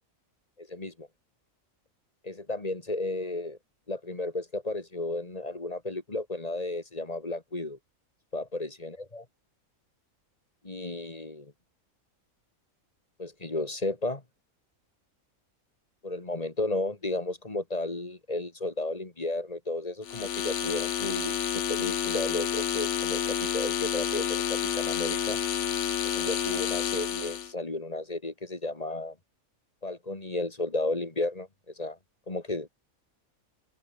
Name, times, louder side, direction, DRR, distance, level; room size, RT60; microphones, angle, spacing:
voice 1, 0.6-1.1 2.2-3.6 3.9-7.8 8.3-9.2 10.6-11.5 13.2-14.2 16.0-25.4 26.0-29.2 29.8-32.0 32.3-32.7, left 2 dB, 25° left, 2.4 m, -33 dB
sound 1, 20.0-27.5, left 9 dB, 60° left, 1.2 m, -29 dB
open air
omnidirectional pair, 1.4 m